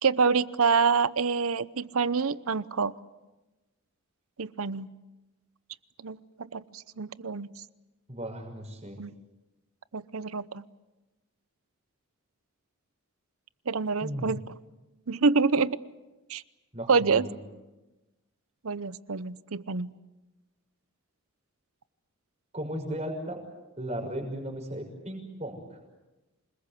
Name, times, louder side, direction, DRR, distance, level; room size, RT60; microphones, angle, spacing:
voice 1, 0.0-2.9 4.4-4.9 6.0-7.5 9.0-9.1 9.9-10.6 13.7-14.4 15.1-15.8 16.3-16.4 16.9-17.3 18.6-19.9, right 5 dB, 80° right, 17 dB, 0.8 m, -26 dB
voice 2, 8.1-9.0 14.0-14.3 16.7-17.4 22.5-23.4 23.8-25.8, right 1 dB, 30° right, 3 dB, 6.1 m, -36 dB
28.0 x 20.0 x 8.4 m, 1.1 s
head